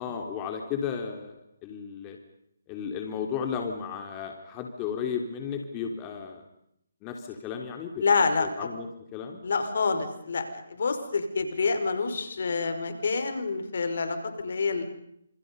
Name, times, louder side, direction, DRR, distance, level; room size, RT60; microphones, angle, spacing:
voice 1, 0.0-1.3 1.6-2.2 2.7-6.4 7.0-8.0 8.4-8.9 9.1-9.4, left 7 dB, 20° left, 3 dB, 3.5 m, -34 dB
voice 2, 8.0-8.7 9.4-14.8, left 4 dB, 65° left, 8 dB, 5.5 m, -27 dB
30.0 x 28.0 x 5.5 m, 0.75 s
hypercardioid pair, 155°, 0 cm